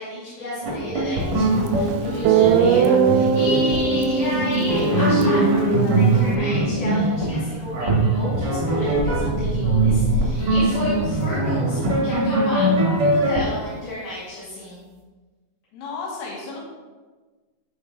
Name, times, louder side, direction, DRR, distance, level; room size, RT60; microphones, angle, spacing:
voice 1, 0.0-14.8, left 1 dB, 45° left, -12 dB, 3.2 m, -32 dB
sound 1, 0.6-13.4, right 2 dB, 55° right, 1.2 m, -22 dB
Guitar, 1.7-1.8 2.2-6.4, right 6 dB, 85° right, 2.2 m, -20 dB
sound 2, 6.4-11.4, left 1 dB, 30° left, 1.4 m, -29 dB
voice 2, 15.7-16.6, left 4 dB, 85° left, -2 dB, 3.8 m, -33 dB
11.5 x 4.8 x 3.9 m, 1.3 s
omnidirectional pair, 5.0 m